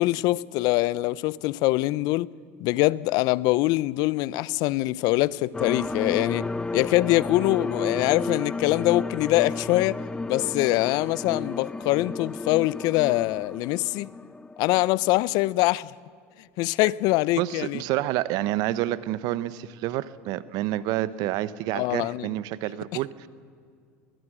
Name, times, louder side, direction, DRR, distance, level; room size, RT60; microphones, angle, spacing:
voice 1, 0.0-2.3 2.6-10.0 10.3-14.1 14.6-15.9 16.6-17.8 21.7-22.3, left 19 dB, 60° left, 0.5 m, -24 dB
sound 1, 5.5-15.4, left 3 dB, 10° left, 0.5 m, -33 dB
voice 2, 17.4-23.3, right 15 dB, 60° right, 0.9 m, -28 dB
22.5 x 20.0 x 6.2 m
hypercardioid pair, 90°, 8 cm